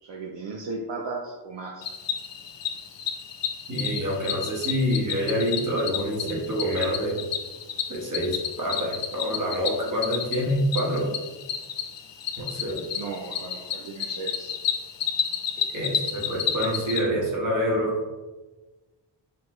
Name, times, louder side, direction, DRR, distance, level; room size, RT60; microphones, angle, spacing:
voice 1, 0.0-1.9 12.9-14.5, right 3 dB, 75° right, 0 dB, 0.5 m, -36 dB
Cricket, 1.8-17.0, left 7 dB, 75° left, 0.5 m, -31 dB
voice 2, 3.7-7.2 7.9-11.1 12.4-12.8 15.7-18.0, equal, 45° right, -4 dB, 1.3 m, -26 dB
5.8 x 2.2 x 3.0 m, 1.2 s
wide cardioid pair, 60°, 44 cm